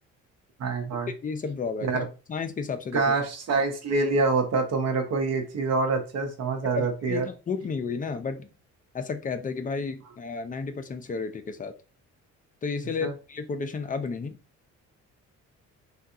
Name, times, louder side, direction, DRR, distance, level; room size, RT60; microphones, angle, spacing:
voice 1, 0.6-1.1 1.8-2.1 2.9-7.3 13.0-13.1, right 4 dB, 55° right, 4 dB, 0.9 m, -26 dB
voice 2, 1.2-2.0 2.3-3.0 6.7-8.5 8.9-11.8 12.6-14.4, left 5 dB, 25° left, 8 dB, 0.5 m, -32 dB
3.5 x 2.4 x 2.7 m, 0.33 s
cardioid pair, 90°, 30 cm